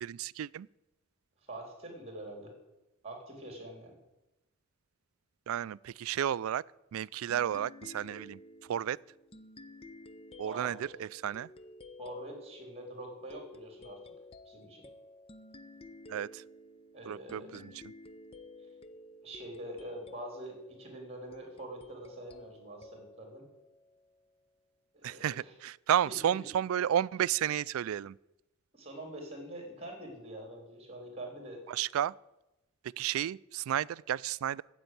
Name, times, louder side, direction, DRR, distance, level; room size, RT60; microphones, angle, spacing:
voice 1, 0.0-0.7 5.5-6.6 6.9-8.4 8.7-9.0 10.4-11.5 16.1-16.4 17.1-17.7 25.0-28.2 31.7-32.1 33.0-34.6, right 10 dB, 80° right, 0.3 m, -32 dB
voice 2, 1.5-2.5 3.0-4.0 10.5-10.8 12.0-14.0 14.5-14.9 16.9-17.5 19.2-23.5 24.9-25.5 26.1-26.2 28.7-31.6, right 1 dB, 30° right, 3.7 m, -45 dB
sound 1, 7.3-24.5, left 2 dB, 30° left, 0.6 m, -53 dB
9.8 x 7.9 x 9.3 m
head